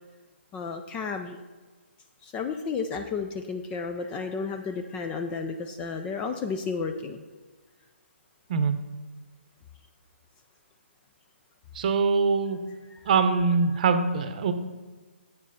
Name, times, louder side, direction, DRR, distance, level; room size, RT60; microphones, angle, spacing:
voice 1, 0.5-1.4 2.2-7.2, left 5 dB, 15° left, 6 dB, 0.4 m, -32 dB
voice 2, 11.7-12.6 13.1-14.5, right 5 dB, 40° right, 9 dB, 0.8 m, -23 dB
8.1 x 5.2 x 5.6 m, 1.3 s
hypercardioid pair, 150°, 7 cm